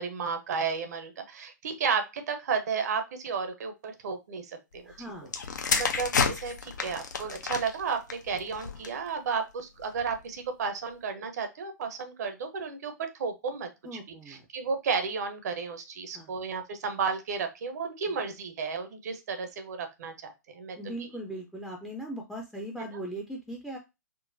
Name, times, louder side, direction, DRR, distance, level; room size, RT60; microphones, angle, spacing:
voice 1, 0.0-4.9 5.8-12.9 13.2-14.0 14.3-21.1, right 5 dB, 60° right, 7 dB, 0.7 m, -33 dB
voice 2, 4.9-5.3 13.8-14.5 16.1-16.3 20.7-23.8, right 1 dB, ahead, 1 dB, 0.5 m, -39 dB
sound 1, 5.3-9.1 9.9-10.2, left 5 dB, 70° left, 0.6 m, -31 dB
3.7 x 2.1 x 2.6 m, 0.24 s
figure-of-eight pair, 115°, 10 cm